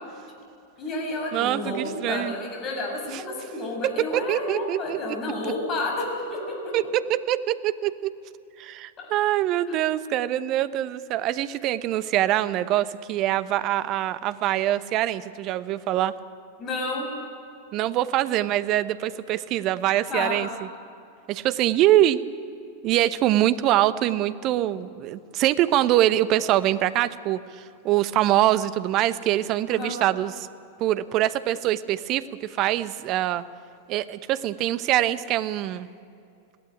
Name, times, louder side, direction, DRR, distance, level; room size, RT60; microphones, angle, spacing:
voice 1, 0.8-6.9 9.0-9.1 9.7-9.8 16.6-17.1 20.1-20.4 29.7-29.9, left 2 dB, 30° left, 0 dB, 6.5 m, -30 dB
voice 2, 1.3-2.3 3.1-3.2 3.8-5.0 6.7-8.1 8.6-16.1 17.7-20.5 21.3-22.2 22.8-30.5 30.8-32.2 32.6-33.4 33.9-35.9, right 13 dB, 40° right, 14 dB, 1.0 m, -24 dB
21.5 x 17.0 x 9.3 m, 2.5 s
figure-of-eight pair, 90°, 0 cm